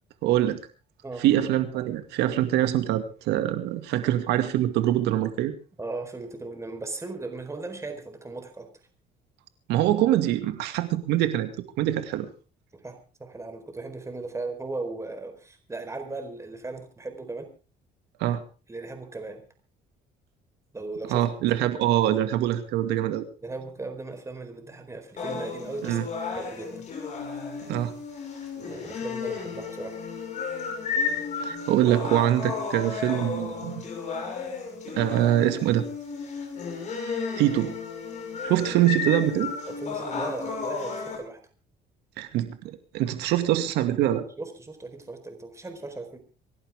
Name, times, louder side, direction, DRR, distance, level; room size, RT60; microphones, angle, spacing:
voice 1, 0.2-0.6 1.2-5.5 9.7-12.3 18.2-18.4 21.1-23.2 25.8-26.0 27.7-27.9 31.4-33.8 34.9-35.8 37.4-37.7 38.4-39.5 42.2-44.3, right 13 dB, 90° right, 9 dB, 2.3 m, -24 dB
voice 2, 5.8-8.7 12.8-17.5 18.7-19.4 20.7-21.2 23.4-26.0 26.3-26.8 28.7-30.0 39.7-41.4 44.4-46.2, right 3 dB, 15° right, 6 dB, 4.5 m, -37 dB
sound 1, 25.2-41.2, left 5 dB, 45° left, 6.5 m, -33 dB
27.0 x 11.5 x 3.7 m, 0.35 s
cardioid pair, 110°, 17 cm